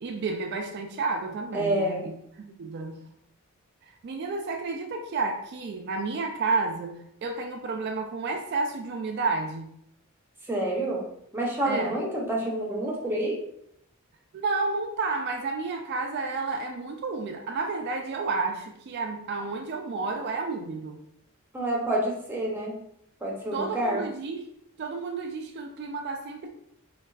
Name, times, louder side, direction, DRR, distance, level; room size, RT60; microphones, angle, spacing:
voice 1, 0.0-3.0 3.9-9.7 11.7-12.0 14.3-21.0 23.5-24.5 24.8-26.5, right 3 dB, 50° right, 4 dB, 0.3 m, -31 dB
voice 2, 1.5-2.0 10.5-11.0 11.3-13.4 21.5-22.7 23.2-24.0, right 1 dB, 10° right, -3 dB, 0.6 m, -28 dB
4.2 x 2.3 x 2.3 m, 0.74 s
head